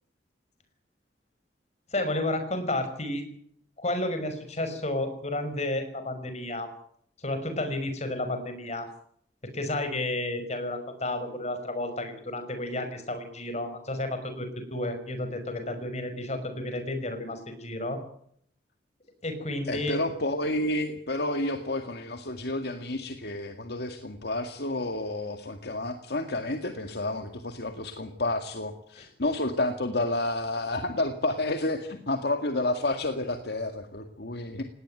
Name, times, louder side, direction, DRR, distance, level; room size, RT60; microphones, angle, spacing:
voice 1, 1.9-3.2 3.8-6.7 7.2-8.9 9.5-18.0 19.2-20.0 29.0-29.1, left 1 dB, 40° left, 8 dB, 5.6 m, -31 dB
voice 2, 19.7-34.6, left 2 dB, 65° left, 6 dB, 2.1 m, -30 dB
19.0 x 18.5 x 9.2 m, 0.66 s
head